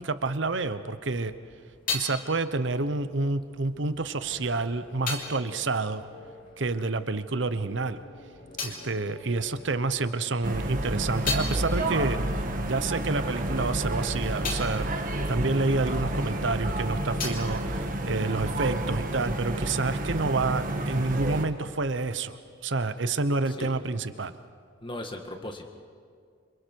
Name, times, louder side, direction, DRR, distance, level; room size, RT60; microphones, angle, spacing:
voice 1, 0.0-1.3 1.9-6.1 6.6-8.0 8.6-14.9 15.3-22.4 22.6-24.3, right 3 dB, 65° right, 12 dB, 0.9 m, -29 dB
sound 1, 1.2-7.1 7.3-10.0 10.4-16.4 16.7-18.7, left 4 dB, 45° left, 3.3 m, -39 dB
sound 2, 4.0-18.4, left 2 dB, 80° left, 5.4 m, -48 dB
sound 3, 10.4-21.5, right 1 dB, 45° right, 1.6 m, -30 dB
voice 2, 23.5-23.8 24.8-25.7, left 1 dB, 25° left, 4 dB, 1.8 m, -38 dB
28.0 x 26.0 x 4.7 m, 2.1 s
head